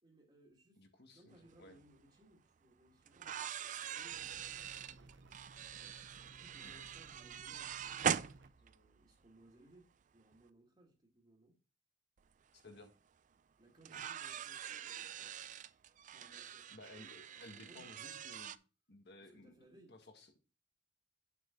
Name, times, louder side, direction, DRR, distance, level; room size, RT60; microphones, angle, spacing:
voice 1, 0.0-0.9 1.1-5.1 5.8-8.1 8.6-11.6 13.6-15.4 16.1-17.9 19.2-20.0, right 1 dB, 30° right, 2.1 m, -65 dB
voice 2, 0.8-1.8 6.6-6.7 12.6-12.9 16.7-18.6 18.9-19.5 19.9-20.3, left 1 dB, 60° left, 1.7 m, -56 dB
sound 1, 1.8-1.9 3.1-9.0 10.3-10.4 12.2-12.3 12.6-12.7 13.8-18.6, right 8 dB, 45° right, 0.4 m, -42 dB
sound 2, 4.1-8.5, right 3 dB, 65° right, 0.8 m, -59 dB
8.1 x 7.3 x 3.8 m
head